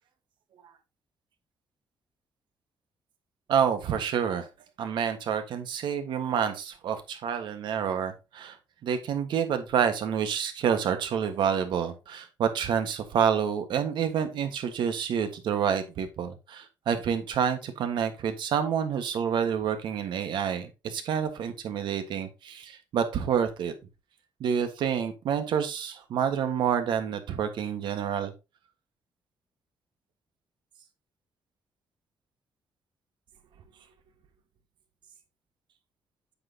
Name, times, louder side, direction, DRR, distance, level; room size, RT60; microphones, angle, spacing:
voice 1, 3.5-4.5 4.8-8.6 8.8-23.7 24.4-28.3, right 8 dB, 75° right, 8 dB, 1.5 m, -28 dB
8.7 x 6.4 x 2.8 m, 0.26 s
cardioid pair, 135°, 8 cm